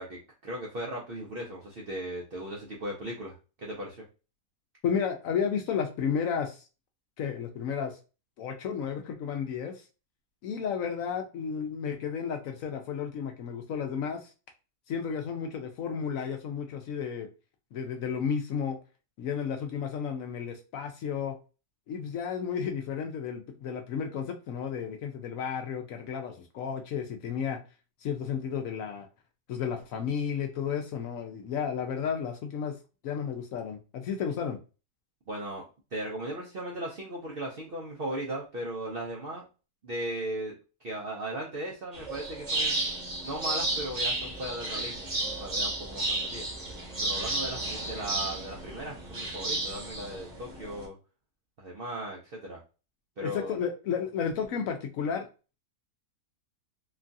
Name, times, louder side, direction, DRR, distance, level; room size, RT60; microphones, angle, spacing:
voice 1, 0.0-4.0 35.3-35.6 35.9-39.4 39.8-40.5 40.8-42.8 43.2-46.5 47.0-51.0 51.6-52.6 53.2-53.6, right 1 dB, 65° right, -2 dB, 0.5 m, -37 dB
voice 2, 4.8-6.6 7.2-8.0 8.4-9.7 10.4-14.3 14.9-17.3 17.7-18.8 19.2-21.4 21.9-27.6 28.0-29.1 29.5-32.7 33.0-34.6 53.2-55.3, left 7 dB, 70° left, 4 dB, 0.8 m, -32 dB
sound 1, 41.9-50.8, right 2 dB, 35° right, 0.8 m, -33 dB
3.0 x 2.3 x 2.5 m, 0.32 s
omnidirectional pair, 1.7 m